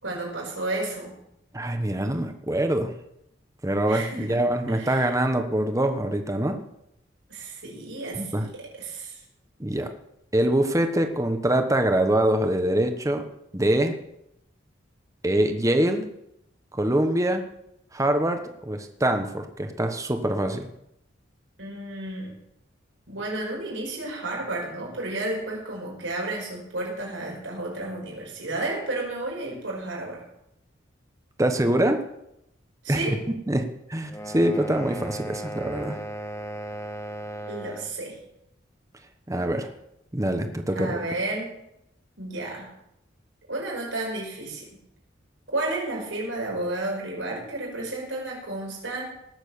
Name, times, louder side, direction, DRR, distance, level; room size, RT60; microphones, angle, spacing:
voice 1, 0.0-1.1 3.9-4.4 4.7-5.2 7.3-9.2 21.6-22.3 23.1-30.2 32.8-33.2 37.5-38.2 40.7-41.5 42.2-42.7 43.5-44.7 45.5-49.0, right 2 dB, 85° right, -2 dB, 5.5 m, -32 dB
voice 2, 1.5-2.9 3.6-6.6 8.1-8.5 9.6-9.9 10.3-13.3 13.5-14.0 15.2-16.1 16.7-17.4 17.9-20.7 31.4-32.1 32.9-33.2 33.5-33.6 33.9-36.0 39.3-39.7 40.1-40.9, right 1 dB, 15° right, 6 dB, 1.2 m, -24 dB
sound 1, 34.1-38.0, right 1 dB, 15° left, 1.4 m, -36 dB
18.5 x 7.3 x 7.1 m, 0.81 s
head